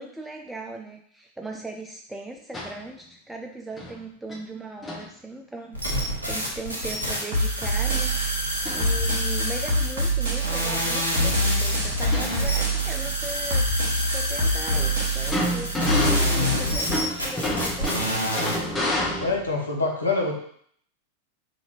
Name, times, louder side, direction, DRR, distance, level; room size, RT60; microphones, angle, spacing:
voice 1, 0.0-18.2, right 2 dB, 5° right, 2 dB, 0.3 m, -39 dB
sound 1, 2.5-2.8 3.8-3.9 4.3-4.4 4.8-5.1 8.6-8.9 9.3-9.4 10.7-10.8 11.2-11.3 11.9-12.8 14.7-19.5, left 1 dB, 10° left, 1.0 m, -29 dB
sound 2, 5.7-18.6, equal, 80° right, 1.2 m, -29 dB
sound 3, 7.3-16.7, right 1 dB, 60° right, 1.2 m, -26 dB
voice 2, 19.2-20.4, left 3 dB, 80° left, -2 dB, 1.0 m, -25 dB
5.3 x 2.7 x 3.0 m, 0.62 s
figure-of-eight pair, 90°, 0 cm